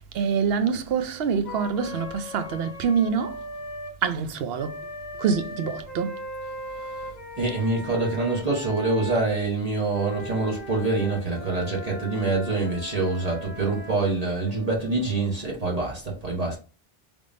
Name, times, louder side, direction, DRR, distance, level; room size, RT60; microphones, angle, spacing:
voice 1, 0.1-3.4 4.0-4.8 5.2-6.1, right 6 dB, 75° right, 0.8 m, -25 dB
Wind instrument woodwind instrument, 1.4-3.9 4.6-9.3 9.9-15.3, left 1 dB, 40° left, 1.4 m, -39 dB
voice 2, 7.4-16.6, right 3 dB, 40° right, 1.0 m, -26 dB
3.4 x 3.3 x 2.5 m
omnidirectional pair, 1.1 m